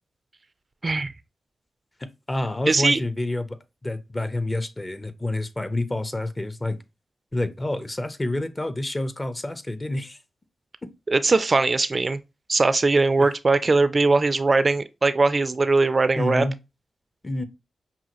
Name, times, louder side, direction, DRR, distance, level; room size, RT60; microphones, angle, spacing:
voice 1, 2.0-3.6 3.8-6.8 7.3-10.2 10.8-10.9 13.2-13.3 16.2-16.6 17.2-17.4, left 1 dB, 30° left, 0.7 m, -28 dB
voice 2, 2.7-3.0 11.1-12.2 12.5-16.5, right 3 dB, 45° right, 0.3 m, -20 dB
5.5 x 2.3 x 2.9 m
supercardioid pair, 40°, 0 cm